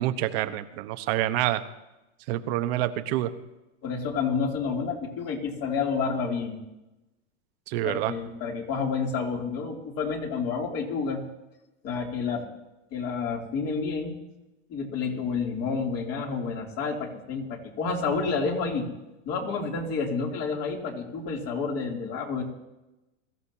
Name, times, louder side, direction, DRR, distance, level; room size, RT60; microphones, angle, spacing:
voice 1, 0.0-1.6 2.3-3.3 7.7-8.1, right 14 dB, 50° right, 10 dB, 1.1 m, -27 dB
voice 2, 3.8-6.6 7.8-11.2 11.8-12.4 12.9-14.2 14.7-18.9 19.2-22.4, left 5 dB, 40° left, 0 dB, 3.0 m, -29 dB
22.5 x 14.0 x 2.9 m, 0.98 s
hypercardioid pair, 130°, 38 cm